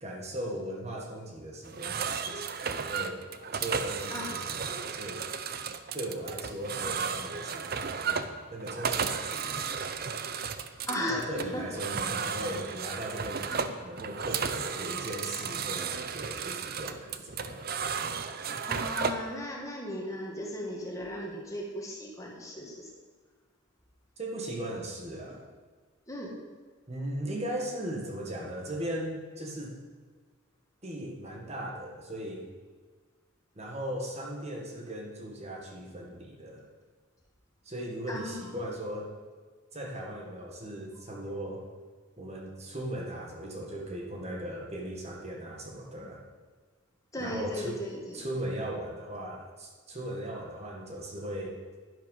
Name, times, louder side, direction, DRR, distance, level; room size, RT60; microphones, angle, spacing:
voice 1, 0.0-3.2 3.5-5.3 5.9-8.2 8.5-9.8 11.1-17.7 24.2-25.4 26.9-29.8 30.8-32.5 33.5-36.6 37.6-39.1 39.7-41.6 42.2-46.2 47.2-47.8 48.1-51.6, right 1 dB, 35° right, 0 dB, 1.6 m, -38 dB
sound 1, 1.6-19.3, right 6 dB, 50° right, 0.7 m, -34 dB
voice 2, 10.9-11.6 13.5-13.7 18.6-22.9 26.1-26.4 38.1-38.6 47.1-48.3, left 1 dB, 15° left, -2 dB, 1.9 m, -36 dB
11.0 x 11.0 x 5.4 m, 1.5 s
head